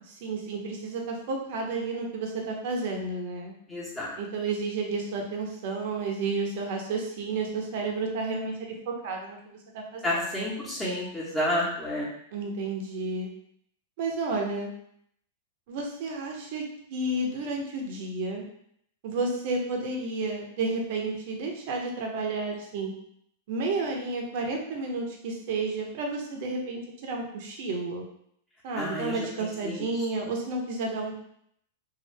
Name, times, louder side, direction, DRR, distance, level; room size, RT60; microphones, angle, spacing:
voice 1, 0.1-3.5 4.2-10.5 12.3-13.3 14.0-14.7 15.7-16.6 16.9-18.4 19.0-22.9 23.5-28.0 28.6-31.2, right 3 dB, 60° right, 1 dB, 0.8 m, -31 dB
voice 2, 3.7-4.1 10.0-12.1 28.8-29.8, left 1 dB, 10° left, -6 dB, 1.3 m, -30 dB
2.8 x 2.6 x 3.2 m, 0.69 s
hypercardioid pair, 115°, 0 cm